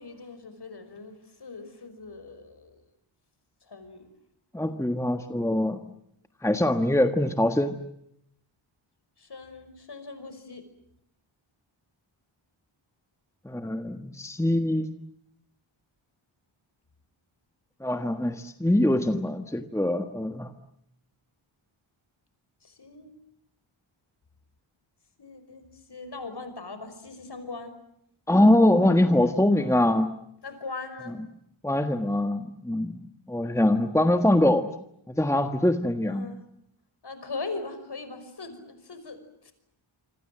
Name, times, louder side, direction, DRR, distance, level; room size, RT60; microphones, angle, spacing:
voice 1, 0.0-2.8 3.6-4.1 9.2-10.6 22.6-23.1 25.2-27.8 29.5-29.8 30.4-31.2 36.0-36.4 37.0-39.5, left 3 dB, 55° left, 9 dB, 5.5 m, -40 dB
voice 2, 4.5-5.8 6.4-7.8 13.4-14.9 17.8-20.5 28.3-30.1 31.6-33.0 33.3-34.7 35.1-36.3, left 1 dB, 5° left, 7 dB, 1.4 m, -23 dB
27.0 x 26.0 x 7.7 m, 0.75 s
wide cardioid pair, 110°, 49 cm